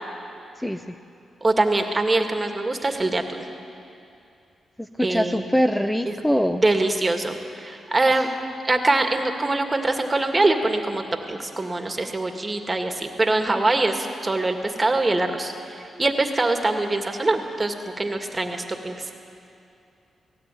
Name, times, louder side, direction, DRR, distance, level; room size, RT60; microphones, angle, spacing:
voice 1, 0.6-0.9 4.8-6.6, equal, 5° left, 7 dB, 0.9 m, -23 dB
voice 2, 1.4-3.5 5.0-5.5 6.1-6.2 6.6-8.3 8.6-11.0 11.3-19.1, right 2 dB, 30° right, 5 dB, 2.2 m, -23 dB
17.5 x 16.5 x 9.3 m, 2.6 s
supercardioid pair, 55°, 0 cm